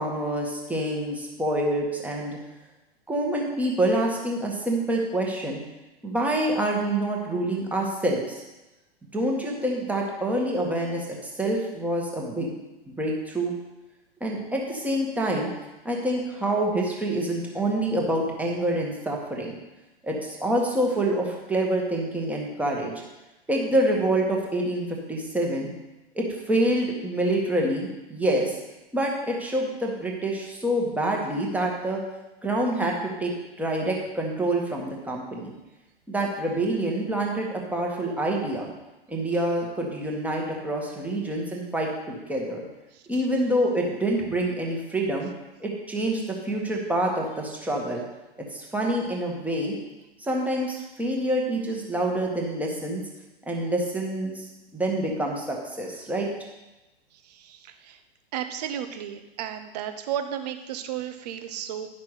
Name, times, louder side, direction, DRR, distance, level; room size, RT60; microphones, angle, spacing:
voice 1, 0.0-2.4 3.1-5.6 6.0-8.4 9.1-12.5 12.9-13.5 14.2-15.5 15.8-19.6 20.0-23.0 23.5-25.7 26.1-28.5 28.9-32.0 32.4-33.3 33.6-35.5 36.1-38.7 39.1-42.6 43.1-45.3 45.6-48.0 48.5-49.8 50.2-53.0 53.5-54.4 54.7-56.3, right 1 dB, 5° right, -1 dB, 1.5 m, -26 dB
voice 2, 58.3-61.9, right 10 dB, 40° right, 8 dB, 0.9 m, -33 dB
10.5 x 6.0 x 4.9 m, 1.0 s
figure-of-eight pair, 105°, 31 cm